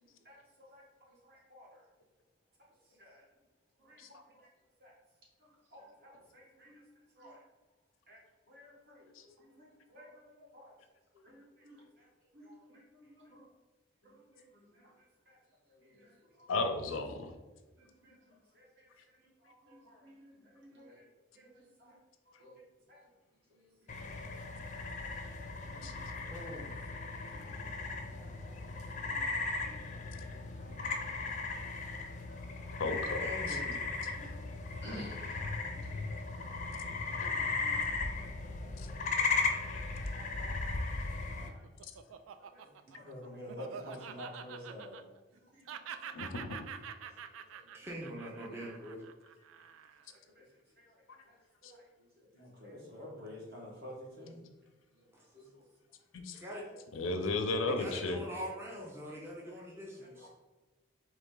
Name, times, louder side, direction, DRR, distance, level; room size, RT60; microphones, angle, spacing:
voice 1, 0.2-1.9 2.8-3.3 3.8-4.5 4.8-4.9 5.7-6.8 7.1-7.4 8.1-8.2 8.5-10.7 11.1-12.1 12.4-13.1 15.0-15.4 15.7-16.3 17.2-17.5 18.5-20.1 20.7-21.1 21.3-22.0 22.4-22.6 22.9-23.1 23.5-24.8 25.8-26.4 27.1-27.5 27.9-29.1 30.6-31.2 31.7-32.8 33.6-33.8 34.2-34.6 35.3-35.7 36.1-36.2 36.7-36.8 37.3-38.2 38.6-38.9 39.2-39.4 39.8-39.9 40.1-40.6 40.9-41.2 41.5-41.7 42.5-42.7 43.0-45.0 46.1-46.2 46.9-47.8 48.5-48.7 50.1-50.5 50.8-51.4 51.6-54.5 54.9-55.1 55.3-55.5 56.5-56.8 58.6-58.7 59.1-59.6 60.0-60.3, left 1 dB, 50° right, -3 dB, 1.3 m, -54 dB
voice 2, 11.3-11.8 12.3-13.5 14.0-14.9 15.8-16.1 17.8-18.4 19.2-19.3 19.7-20.9 21.4-21.7 22.4-22.6 23.9-24.3 25.4-26.1 27.3-27.4 29.0-29.2 29.6-30.3 30.7-30.8 33.7-34.4 34.8-35.4 35.8-36.0 37.1-38.2 38.8-39.3 41.2-41.6 42.4-42.7 42.9-43.1 45.5-46.1, equal, 65° right, -4 dB, 1.4 m, -55 dB
voice 3, 16.5-17.3 25.8-25.9 32.8-33.6 39.7-39.8 46.1-46.6 56.1-56.4 56.9-58.2, left 3 dB, 85° left, 5 dB, 0.5 m, -34 dB
sound 1, 23.9-41.5, left 3 dB, 40° left, 0.5 m, -37 dB
voice 4, 26.3-26.7 33.2-33.9 35.9-36.0 42.9-43.0 47.7-49.0 55.1-55.2 56.3-56.6 57.7-60.3, equal, 10° right, -3 dB, 0.5 m, -43 dB
Laughter, 41.1-45.4 45.7-50.1, right 8 dB, 85° right, 0.3 m, -47 dB
4.0 x 3.1 x 3.7 m, 1.2 s
head